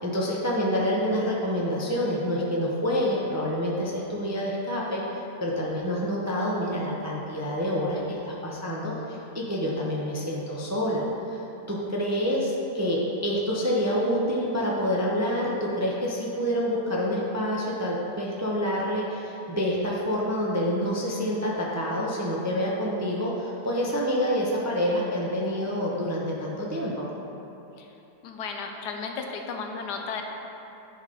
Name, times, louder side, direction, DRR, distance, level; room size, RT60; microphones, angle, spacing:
voice 1, 0.0-11.0 11.3-11.4 11.7-27.1, equal, 20° right, -4 dB, 0.5 m, -27 dB
voice 2, 28.2-30.2, left 5 dB, 85° left, 3 dB, 1.3 m, -34 dB
10.5 x 4.1 x 5.0 m, 3.0 s
omnidirectional pair, 1.7 m